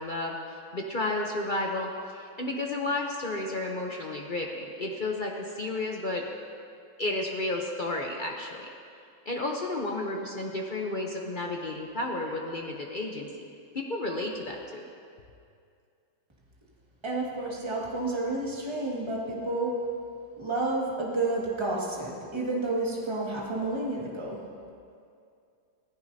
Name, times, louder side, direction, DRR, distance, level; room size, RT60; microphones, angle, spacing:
voice 1, 0.0-6.2 7.0-8.7 9.3-14.8, left 2 dB, 65° left, 0 dB, 0.5 m, -32 dB
voice 2, 17.0-19.7 20.4-24.4, right 2 dB, 15° right, -4 dB, 1.8 m, -30 dB
17.0 x 15.0 x 2.8 m, 2.4 s
omnidirectional pair, 2.1 m